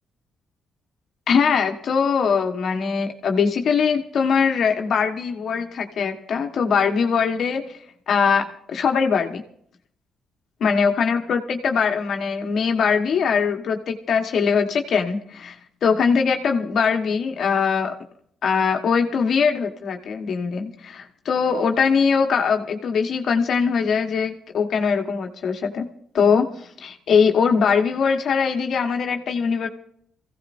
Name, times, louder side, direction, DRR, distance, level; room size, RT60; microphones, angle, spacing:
voice 1, 1.3-7.8 8.1-9.4 10.6-15.6 15.8-17.9 18.4-25.9 26.1-29.7, left 6 dB, 60° left, 4 dB, 1.3 m, -21 dB
24.0 x 16.0 x 2.6 m, 0.66 s
cardioid pair, 90°, 0 cm